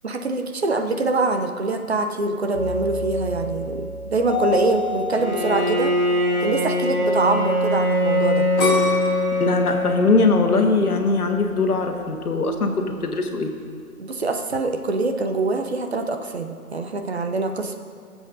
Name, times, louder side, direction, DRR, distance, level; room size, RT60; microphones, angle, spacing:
voice 1, 0.0-5.9 6.4-8.5 14.0-17.8, right 3 dB, 45° right, 6 dB, 0.7 m, -24 dB
sound 1, 2.5-7.2, left 2 dB, 20° right, 2.0 m, -30 dB
Bowed string instrument, 5.2-10.6, left 1 dB, 90° right, 2.7 m, -22 dB
sound 2, 8.6-11.5 12.0-12.5, left 3 dB, 5° left, 1.3 m, -27 dB
voice 2, 9.4-13.5, left 3 dB, 85° left, 4 dB, 1.4 m, -21 dB
20.5 x 7.8 x 2.6 m, 2.3 s
hypercardioid pair, 165°, 44 cm